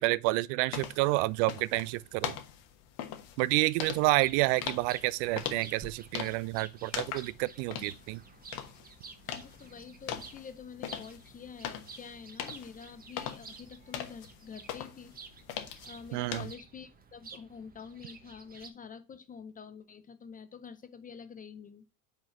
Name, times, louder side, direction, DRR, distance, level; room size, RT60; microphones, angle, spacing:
voice 1, 0.0-2.4 3.4-8.2 16.1-16.5, right 20 dB, 50° right, 0.5 m, -29 dB
sound 1, 0.7-16.5, left 10 dB, 55° left, 1.3 m, -42 dB
sound 2, 4.0-18.7, right 5 dB, 20° right, 0.9 m, -52 dB
voice 2, 9.3-15.1 15.9-21.8, left 6 dB, 20° left, 0.5 m, -47 dB
5.3 x 3.9 x 5.7 m
hypercardioid pair, 85°, 47 cm